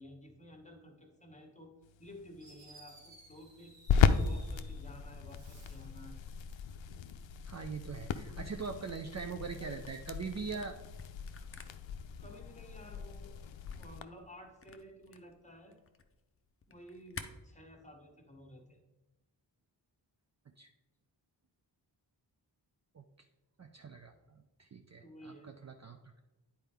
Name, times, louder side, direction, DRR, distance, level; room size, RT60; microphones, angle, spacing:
voice 1, 0.0-1.7 2.0-3.7 4.2-6.2 8.8-8.9 9.6-9.8 12.2-13.3 13.7-15.8 16.7-18.8 25.0-25.6, equal, 15° left, 2 dB, 1.4 m, -53 dB
sound 1, 1.8-14.0, left 7 dB, 85° left, 0.5 m, -36 dB
Fireworks, 2.0-2.1 2.4-4.8 5.2-6.0, right 2 dB, 70° right, 1.9 m, -59 dB
voice 2, 7.5-10.8 20.6-20.7 22.9-23.0 23.6-26.2, right 5 dB, 40° right, 5 dB, 0.5 m, -42 dB
Camera, 9.8-17.3, left 5 dB, 30° left, 0.6 m, -52 dB
9.2 x 4.5 x 3.5 m, 1.0 s
wide cardioid pair, 65°, 45 cm